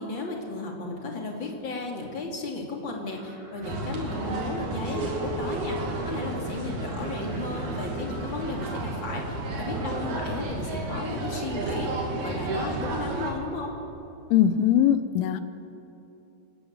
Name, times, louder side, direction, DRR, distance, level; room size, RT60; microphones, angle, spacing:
voice 1, 0.0-13.7, left 3 dB, 35° left, 0 dB, 2.3 m, -34 dB
sound 1, 3.1-11.1, right 2 dB, 75° right, 7.1 m, -48 dB
sound 2, 3.6-13.3, right 2 dB, 45° right, 3.5 m, -32 dB
voice 2, 14.3-15.4, left 10 dB, 80° left, 12 dB, 3.2 m, -21 dB
25.0 x 19.0 x 8.9 m, 2.9 s
omnidirectional pair, 5.7 m